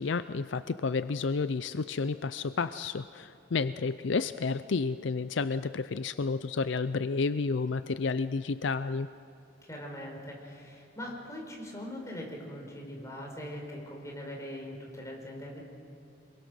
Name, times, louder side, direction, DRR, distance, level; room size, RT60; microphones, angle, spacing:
voice 1, 0.0-9.1, left 4 dB, 65° left, 13 dB, 0.5 m, -31 dB
voice 2, 9.6-15.6, left 1 dB, 15° left, -1 dB, 4.6 m, -41 dB
26.5 x 22.5 x 6.3 m, 2.7 s
head